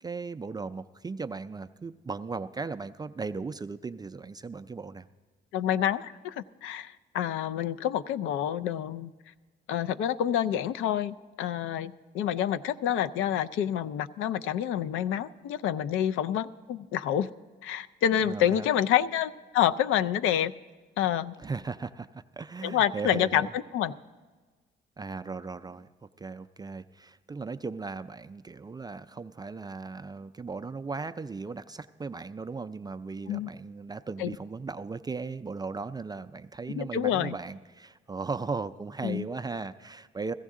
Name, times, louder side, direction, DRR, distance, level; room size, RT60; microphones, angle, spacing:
voice 1, 0.0-5.1 18.2-18.7 21.4-23.5 25.0-40.3, right 4 dB, 20° right, 9 dB, 0.3 m, -37 dB
voice 2, 5.5-9.1 9.7-17.3 17.6-20.5 21.0-21.3 22.6-23.9 33.3-33.5 34.2-34.3 36.7-37.4 39.0-39.3, left 10 dB, 90° left, 13 dB, 0.4 m, -28 dB
16.0 x 14.0 x 3.7 m, 1.4 s
cardioid pair, 90°, 20 cm